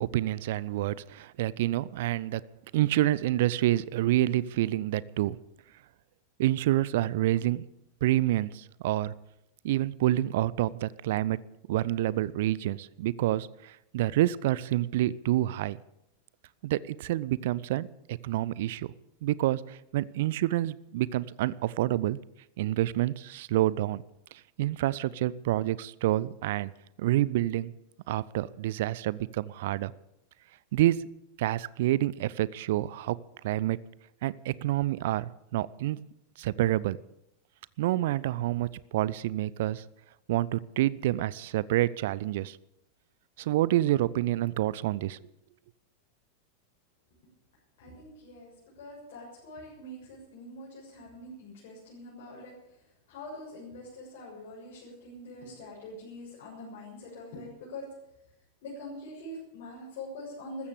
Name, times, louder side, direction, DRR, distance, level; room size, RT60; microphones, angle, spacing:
voice 1, 0.0-2.4 2.7-5.4 6.4-7.6 8.0-9.1 9.6-11.4 11.7-15.8 16.6-18.9 19.2-22.2 22.6-24.0 24.6-26.7 27.0-27.7 28.1-29.9 30.7-31.1 31.4-33.2 33.4-33.8 34.2-36.0 36.4-37.0 37.8-39.8 40.3-42.6 43.4-45.2, right 15 dB, 55° right, 21 dB, 0.5 m, -28 dB
voice 2, 47.8-52.5 53.1-57.8 58.6-60.7, left 1 dB, 50° left, -5 dB, 6.9 m, -44 dB
14.5 x 14.0 x 6.9 m, 0.82 s
figure-of-eight pair, 90°, 0 cm